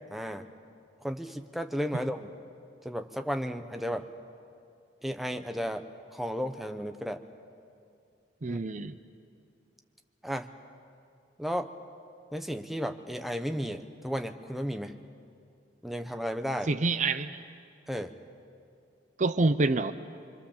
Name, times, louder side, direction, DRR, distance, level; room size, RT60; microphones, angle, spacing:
voice 1, 0.1-0.5 1.0-2.3 2.8-4.1 5.0-7.2 8.5-8.6 10.2-10.5 11.4-11.7 12.3-15.0 15.8-16.7 17.9-18.2, equal, ahead, 6 dB, 0.9 m, -34 dB
voice 2, 8.4-8.9 16.7-17.4 19.2-19.9, right 3 dB, 40° right, 11 dB, 0.6 m, -27 dB
25.5 x 25.5 x 7.2 m, 2.4 s
head